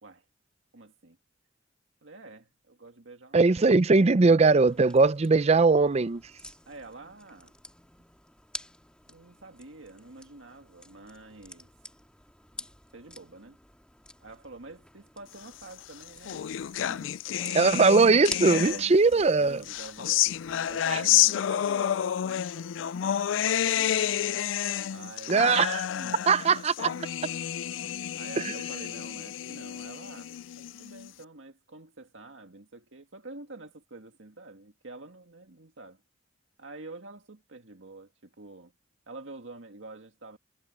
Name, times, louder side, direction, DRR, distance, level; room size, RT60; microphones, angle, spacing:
voice 1, 0.7-1.2 2.0-3.5 6.7-7.5 9.1-11.7 12.9-13.6 14.2-16.5 16.9-17.7 18.5-20.3 20.7-22.8 23.2-24.3 24.9-25.6 25.9-26.3 26.9-27.3 28.1-36.0 36.6-38.7 39.1-40.4, right 2 dB, 85° right, 1.9 m, -47 dB
voice 2, 3.3-6.2 17.5-19.6 25.3-25.9 26.3-26.9, right 4 dB, 35° right, 0.5 m, -20 dB
sound 1, 4.7-20.8, left 1 dB, 5° left, 1.8 m, -48 dB
sound 2, 15.7-19.1 19.6-31.1, left 11 dB, 85° left, 0.4 m, -29 dB
head